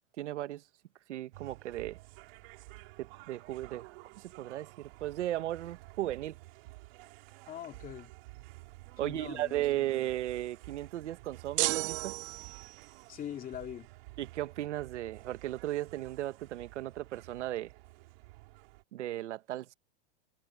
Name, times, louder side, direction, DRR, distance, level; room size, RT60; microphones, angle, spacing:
voice 1, 0.2-0.6 1.1-2.0 3.0-3.9 4.2-6.3 9.0-12.2 14.2-17.7 18.9-19.7, right 14 dB, 90° right, 1.4 m, -36 dB
sound 1, 1.3-18.8, right 23 dB, 60° right, 5.1 m, -52 dB
voice 2, 7.5-8.1 9.0-9.9 13.1-13.9, left 10 dB, 25° left, 2.5 m, -43 dB
sound 2, 11.6-12.9, right 23 dB, 35° right, 0.6 m, -33 dB
supercardioid pair, 145°, 34 cm